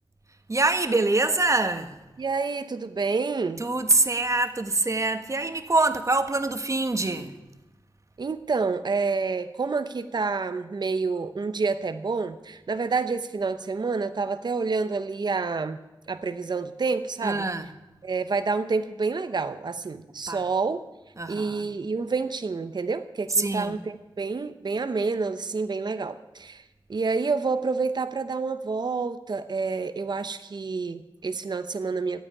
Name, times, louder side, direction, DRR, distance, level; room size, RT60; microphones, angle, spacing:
voice 1, 0.5-1.9 3.6-7.3 17.2-17.7 20.3-20.4 21.2-21.7 23.3-23.8, right 2 dB, 35° right, 1.4 m, -24 dB
voice 2, 2.2-3.6 8.2-15.8 16.1-17.4 18.0-20.8 21.3-26.6 26.9-32.2, right 4 dB, 55° right, 0.8 m, -28 dB
13.5 x 9.0 x 9.6 m
wide cardioid pair, 65°, 9 cm